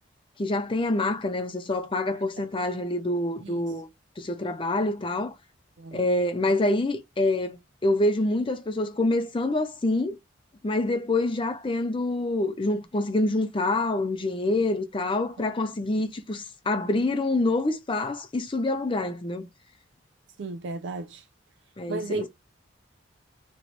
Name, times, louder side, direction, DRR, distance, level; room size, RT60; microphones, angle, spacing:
voice 1, 0.4-3.9 4.2-5.3 5.9-7.6 7.8-10.2 10.6-19.5 21.8-22.3, left 2 dB, 25° left, 0.5 m, -26 dB
voice 2, 20.4-21.2 21.9-22.3, right 3 dB, 65° right, 0.4 m, -34 dB
3.1 x 3.1 x 3.8 m
head